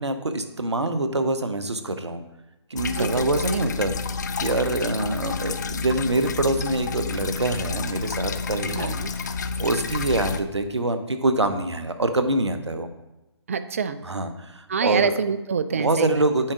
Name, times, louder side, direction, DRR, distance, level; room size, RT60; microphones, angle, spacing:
voice 1, 0.0-2.2 2.7-3.9 4.4-8.9 9.6-12.9 14.0-15.2 15.7-16.5, right 2 dB, 75° right, 9 dB, 0.8 m, -25 dB
sound 1, 2.8-10.4, left 4 dB, 40° left, 0.4 m, -30 dB
voice 2, 2.9-3.2 8.7-8.9 13.5-14.0 14.7-16.1, right 6 dB, 30° right, 12 dB, 0.3 m, -25 dB
8.7 x 3.6 x 4.9 m, 0.99 s
figure-of-eight pair, 140°, 15 cm